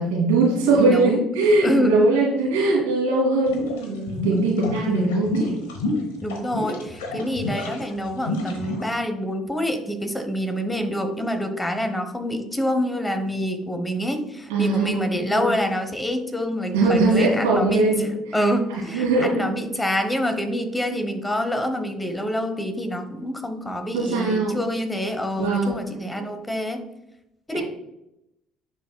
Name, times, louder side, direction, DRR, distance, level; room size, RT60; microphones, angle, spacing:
voice 1, 0.0-5.5 14.5-15.5 16.7-18.1 18.9-19.5 20.9-21.0 23.9-24.6 25.4-25.9 26.2-26.3 27.5-27.6, right 2 dB, 85° right, -3 dB, 2.3 m, -21 dB
voice 2, 0.8-1.2 1.6-2.0 6.2-17.9 18.3-26.8 27.5-27.6, equal, 15° left, 7 dB, 1.0 m, -26 dB
sound 1, 3.5-8.9, left 1 dB, 85° left, 1.1 m, -29 dB
9.9 x 4.3 x 2.3 m, 0.87 s
hypercardioid pair, 65°, 0 cm